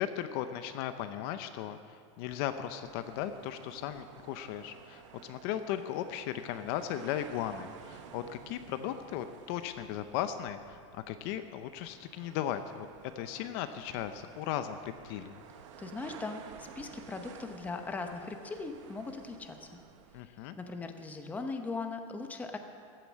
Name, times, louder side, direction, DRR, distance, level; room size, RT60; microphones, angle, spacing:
voice 1, 0.0-12.9 13.2-15.4 20.1-20.5, left 10 dB, 50° left, 10 dB, 0.7 m, -37 dB
sound 1, 2.3-20.2, right 7 dB, 70° right, 1.2 m, -53 dB
voice 2, 15.8-19.7 20.6-22.6, left 3 dB, 10° left, 5 dB, 0.8 m, -39 dB
14.5 x 9.0 x 7.3 m, 2.3 s
supercardioid pair, 155°, 16 cm